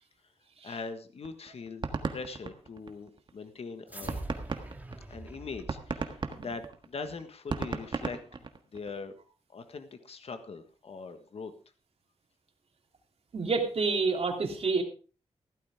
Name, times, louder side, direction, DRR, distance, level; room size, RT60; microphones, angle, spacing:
voice 1, 0.6-4.2 5.1-8.4 8.7-9.1 9.5-11.5, left 4 dB, 60° left, 9 dB, 1.5 m, -41 dB
sound 1, 1.2-3.3 3.7-3.8 4.1-9.0, right 4 dB, 40° right, 1.5 m, -36 dB
sound 2, 3.9-6.6, right 1 dB, 15° right, 1.9 m, -43 dB
voice 2, 13.3-14.8, right 4 dB, 60° right, 2 dB, 3.1 m, -28 dB
15.5 x 12.5 x 3.6 m, 0.36 s
wide cardioid pair, 125°, 12 cm